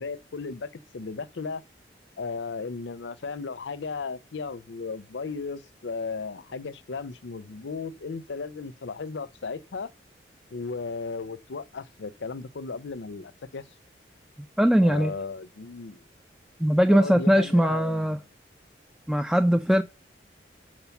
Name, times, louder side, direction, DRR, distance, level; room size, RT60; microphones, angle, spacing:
voice 1, 0.0-1.6 2.2-9.9 10.5-13.6 14.8-16.0 16.9-18.2, left 4 dB, 75° left, 0.6 m, -35 dB
voice 2, 14.6-15.1 16.6-18.2 19.1-19.8, equal, ahead, 0.3 m, -20 dB
7.0 x 4.9 x 6.9 m
head